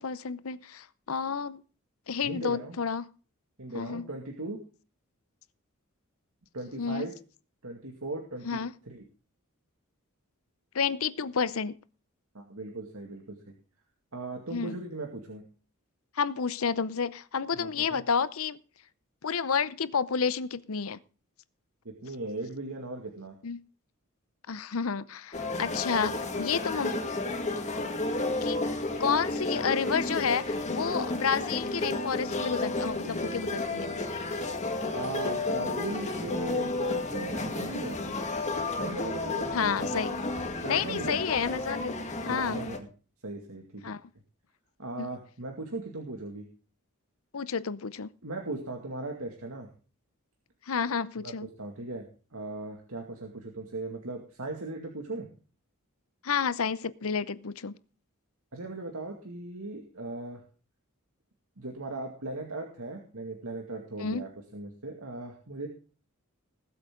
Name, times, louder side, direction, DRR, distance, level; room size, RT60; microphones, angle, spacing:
voice 1, 0.0-1.6 2.1-3.0 3.7-4.1 6.8-7.1 8.4-8.7 10.7-11.8 14.5-14.8 16.2-18.6 19.2-21.0 23.4-23.6 24.5-26.9 28.4-28.6 29.0-33.9 39.5-40.1 40.7-42.0 42.2-42.6 43.8-44.0 45.0-45.1 47.3-48.1 50.7-51.5 56.2-57.8 64.0-64.2, left 6 dB, 75° left, 0.7 m, -30 dB
voice 2, 2.2-2.8 3.6-4.6 6.5-7.1 7.6-9.0 12.3-13.4 14.1-15.4 17.6-18.0 21.8-23.3 34.9-38.0 38.8-40.2 40.5-41.3 42.3-42.9 43.2-43.8 44.8-46.5 48.2-49.7 51.2-51.3 51.6-52.0 52.3-55.3 58.5-60.4 61.6-65.7, right 2 dB, 80° right, 2.2 m, -38 dB
sound 1, 25.3-42.8, left 2 dB, 35° left, 2.0 m, -32 dB
20.0 x 8.1 x 3.8 m
head